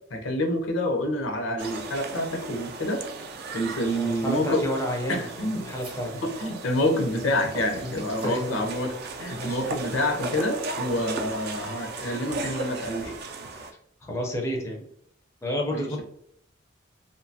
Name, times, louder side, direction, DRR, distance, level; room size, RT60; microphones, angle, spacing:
voice 1, 0.1-3.0 3.5-4.6 5.1-5.6 6.1-8.9 9.2-13.1 15.7-16.0, left 1 dB, 80° left, 4 dB, 0.6 m, -27 dB
sound 1, 1.6-13.7, right 3 dB, 55° right, 0.4 m, -36 dB
voice 2, 3.8-6.2 7.8-7.9 8.2-8.4 9.3-9.6 14.0-14.8 15.4-16.0, equal, 15° left, 0 dB, 0.4 m, -30 dB
sound 2, 6.6-8.6, right 1 dB, 25° right, 0.7 m, -45 dB
2.7 x 2.2 x 2.6 m, 0.70 s
head